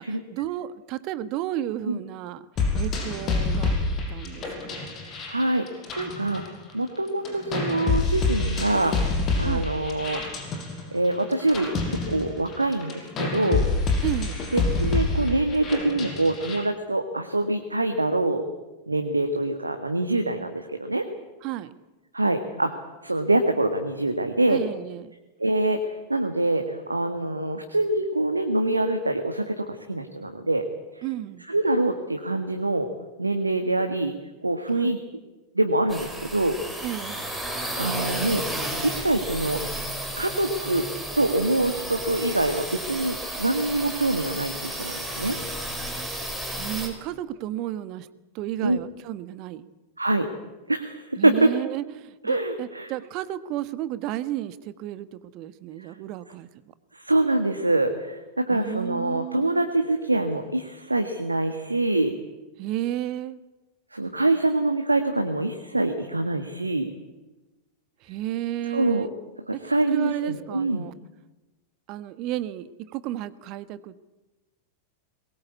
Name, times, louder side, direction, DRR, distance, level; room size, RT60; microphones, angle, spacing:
voice 1, 0.0-2.4 2.7-3.7 4.1-4.9 9.4-9.7 14.0-14.4 21.4-21.8 24.5-25.2 31.0-31.4 34.7-34.9 36.8-37.3 46.5-48.1 48.3-49.7 51.2-56.5 58.5-59.7 62.6-63.4 68.0-69.1 69.5-69.6 69.9-70.9 71.9-74.1, right 13 dB, 40° right, 15 dB, 1.3 m, -32 dB
sound 1, 2.6-7.0 7.2-16.6, left 3 dB, 30° left, 6.2 m, -27 dB
voice 2, 5.3-5.7 6.0-6.4 6.7-8.9 9.4-10.2 10.9-13.6 14.5-18.4 18.9-21.0 22.1-22.7 23.0-24.6 25.4-25.8 26.1-30.6 31.0-31.1 31.5-32.9 33.2-34.1 34.4-35.0 35.5-36.5 37.5-38.4 38.8-39.6 40.2-40.8 41.1-45.4 48.6-48.8 50.0-50.3 50.7-51.5 52.2-52.9 56.9-62.1 63.9-66.9 68.7-69.1 69.5-70.8, right 2 dB, 80° right, 6 dB, 1.6 m, -25 dB
sound 2, 35.9-46.9, right 1 dB, ahead, 5.6 m, -33 dB
22.5 x 20.5 x 8.3 m, 1.1 s
figure-of-eight pair, 90°, 0 cm